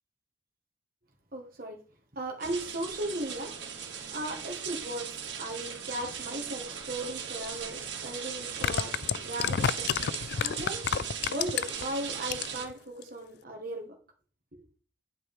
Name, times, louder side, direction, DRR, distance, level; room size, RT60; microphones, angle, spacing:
voice 1, 1.3-1.8 2.1-14.0 14.5-14.6, right 1 dB, 50° right, 2 dB, 1.7 m, -37 dB
sound 1, 2.4-12.6, right 7 dB, 65° right, 2.4 m, -38 dB
sound 2, 7.4-7.5 8.4-11.9 12.2-12.7 13.0-13.1, left 7 dB, 55° left, 0.4 m, -29 dB
9.8 x 8.7 x 3.7 m, 0.40 s
head